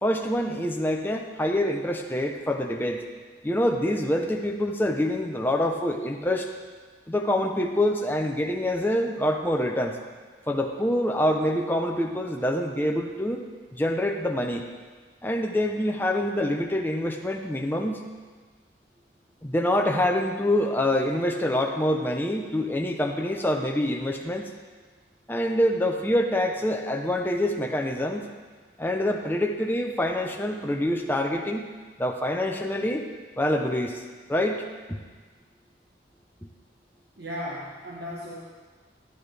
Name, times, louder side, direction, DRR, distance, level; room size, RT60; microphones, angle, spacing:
voice 1, 0.0-3.0 3.4-6.5 7.1-10.0 10.5-13.4 13.7-14.6 15.2-18.1 19.4-24.5 25.3-28.3 28.8-31.7 32.0-33.1 33.4-34.0 34.3-35.0, left 1 dB, 10° left, 2 dB, 0.7 m, -26 dB
voice 2, 37.2-38.4, equal, 70° right, -4 dB, 1.3 m, -35 dB
12.5 x 11.0 x 3.4 m, 1.4 s
head